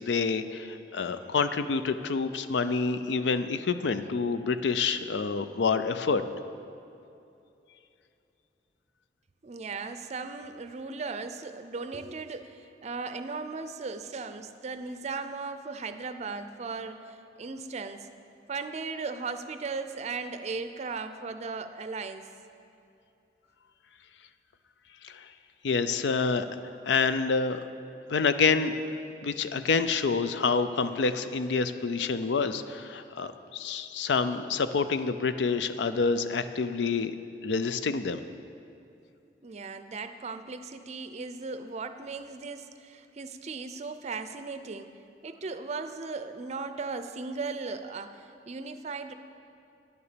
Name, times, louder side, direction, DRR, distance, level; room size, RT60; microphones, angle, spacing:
voice 1, 0.0-6.2 25.0-25.3 25.6-26.5 26.9-27.6 28.1-28.8 29.2-37.2 37.4-38.2, left 4 dB, 85° left, 11 dB, 0.5 m, -27 dB
voice 2, 9.4-18.1 18.5-22.3 39.4-44.9 45.2-49.1, right 4 dB, 40° right, 9 dB, 0.5 m, -37 dB
10.0 x 6.9 x 6.8 m, 2.7 s
head